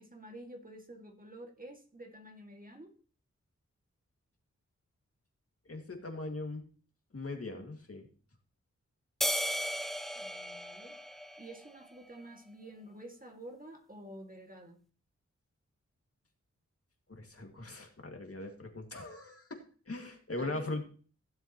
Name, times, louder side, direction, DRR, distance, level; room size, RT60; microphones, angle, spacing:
voice 1, 0.0-2.9 10.2-11.0 11.4-14.8 20.4-20.8, right 1 dB, 30° right, 3 dB, 2.0 m, -49 dB
voice 2, 5.7-6.6 7.1-8.1 17.1-20.8, left 2 dB, 50° left, 3 dB, 2.1 m, -40 dB
sound 1, 9.2-11.8, equal, ahead, 0.7 m, -35 dB
16.0 x 7.4 x 3.0 m, 0.40 s
cardioid pair, 50°, 30 cm